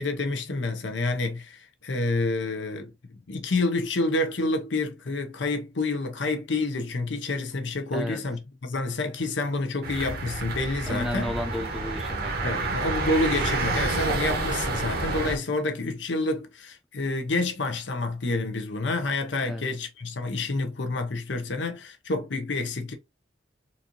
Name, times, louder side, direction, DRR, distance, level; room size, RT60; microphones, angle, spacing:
voice 1, 0.0-11.3 12.4-22.9, left 2 dB, 80° left, 0.8 m, -28 dB
sound 1, 9.8-15.4, right 3 dB, 55° right, 0.9 m, -29 dB
voice 2, 10.9-12.7 19.4-19.6, left 1 dB, ahead, 0.6 m, -33 dB
4.1 x 2.6 x 2.9 m
head